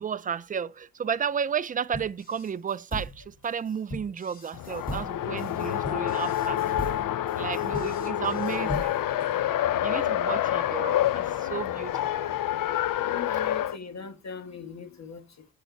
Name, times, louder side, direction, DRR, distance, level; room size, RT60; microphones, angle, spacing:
voice 1, 0.0-7.0 7.4-8.9 9.8-12.3, right 7 dB, 25° right, 0.3 m, -33 dB
sound 1, 1.9-9.2, equal, 25° left, 2.3 m, -39 dB
Race car auto racing, 4.5-13.8, left 12 dB, 65° left, 0.5 m, -28 dB
voice 2, 8.1-8.9 13.0-15.5, left 6 dB, 50° left, 1.5 m, -39 dB
6.7 x 6.5 x 4.6 m
cardioid pair, 120°, 35 cm